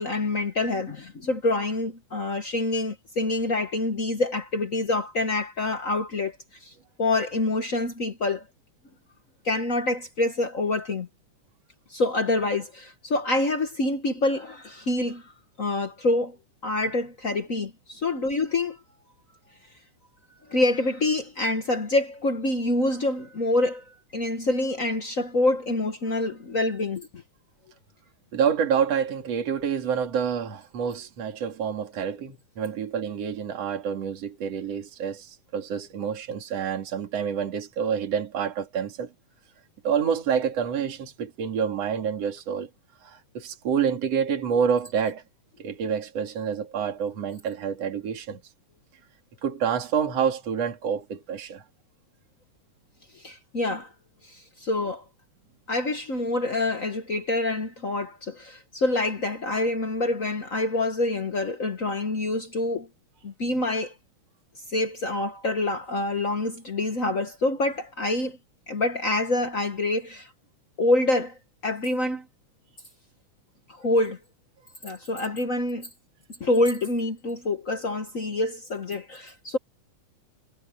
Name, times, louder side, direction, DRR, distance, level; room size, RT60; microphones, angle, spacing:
voice 1, 0.0-6.7 7.0-8.4 9.4-11.1 11.9-15.2 15.6-16.4 16.6-18.8 20.5-27.2 53.1-53.9 54.2-55.0 55.7-62.9 63.2-63.9 64.7-68.4 68.7-70.3 70.8-71.4 71.6-72.2 73.7-74.2 74.8-75.9 76.4-79.6, left 2 dB, 55° left, 0.9 m, -26 dB
voice 2, 28.3-39.1 39.8-42.7 43.0-45.2 45.6-48.4 49.4-51.6, right 7 dB, 55° right, 3.7 m, -28 dB
omnidirectional pair, 3.5 m